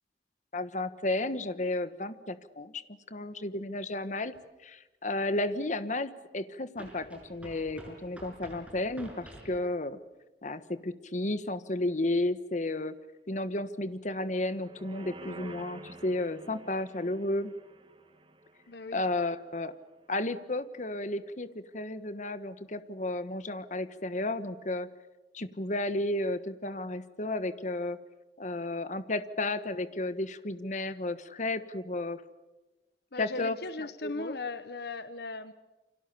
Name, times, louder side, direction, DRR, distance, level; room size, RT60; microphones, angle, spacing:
voice 1, 0.5-2.8 3.1-4.3 4.6-10.0 10.4-12.9 13.3-17.5 18.9-19.7 20.1-24.9 25.3-28.0 28.4-32.2 33.2-33.6 33.8-34.4, left 2 dB, 45° left, 12 dB, 1.3 m, -33 dB
sound 1, 4.3-4.4 6.8-9.6, right 1 dB, 10° right, 6.9 m, -48 dB
sound 2, 14.3-19.7 20.1-20.2, right 1 dB, 30° right, 2.6 m, -50 dB
voice 2, 18.7-19.1 33.1-35.5, left 3 dB, 60° left, 12 dB, 1.0 m, -38 dB
29.0 x 25.5 x 7.0 m, 1.1 s
head